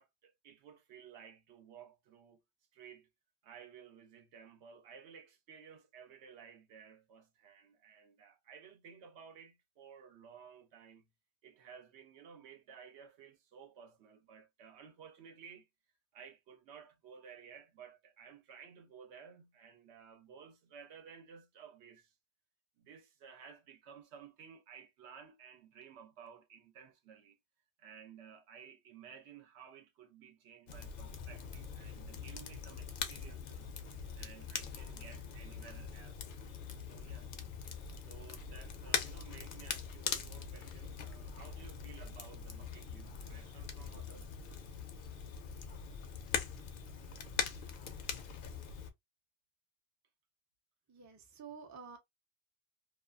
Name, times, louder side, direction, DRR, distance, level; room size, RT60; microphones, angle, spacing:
voice 1, 0.0-2.4 2.7-3.1 3.4-11.1 11.4-15.7 16.1-22.1 22.8-27.4 27.8-33.7 34.1-36.2 36.8-37.3 38.1-44.3, right 7 dB, 80° right, 0.9 m, -55 dB
Crackle, 30.7-48.9, left 6 dB, 60° left, 0.6 m, -42 dB
voice 2, 50.9-52.0, right 6 dB, 25° right, 0.3 m, -50 dB
2.4 x 2.3 x 2.2 m
omnidirectional pair, 1.1 m